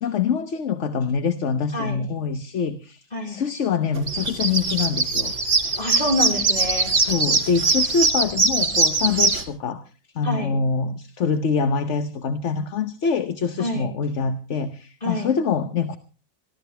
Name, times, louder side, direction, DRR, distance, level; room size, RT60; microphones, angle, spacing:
voice 1, 0.0-5.3 6.9-9.8 10.1-16.0, left 5 dB, 65° left, 10 dB, 1.3 m, -25 dB
voice 2, 1.7-2.0 3.1-3.4 5.8-6.9 10.2-10.6 13.6-13.9 15.0-15.3, left 1 dB, 30° left, 2 dB, 4.7 m, -27 dB
sound 1, 4.0-9.4, right 3 dB, 65° right, 2.5 m, -21 dB
23.0 x 15.5 x 3.3 m, 0.34 s
omnidirectional pair, 1.4 m